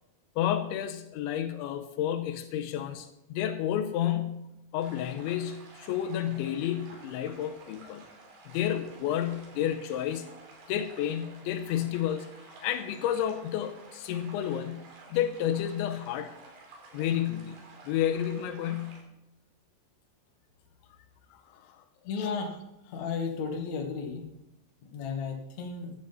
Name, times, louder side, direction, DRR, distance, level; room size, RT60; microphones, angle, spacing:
voice 1, 0.4-4.5 4.7-8.1 8.5-10.3 10.7-12.3 12.6-16.4 16.9-17.6 17.9-19.0 21.3-21.8 22.2-22.3, left 10 dB, 85° left, 7 dB, 3.0 m, -31 dB
sound 1, 4.8-19.0, right 3 dB, 80° right, 5.0 m, -52 dB
voice 2, 22.0-22.6 22.8-24.2 24.9-25.9, left 5 dB, 55° left, 2 dB, 2.2 m, -34 dB
14.5 x 11.0 x 4.0 m, 0.86 s
omnidirectional pair, 5.4 m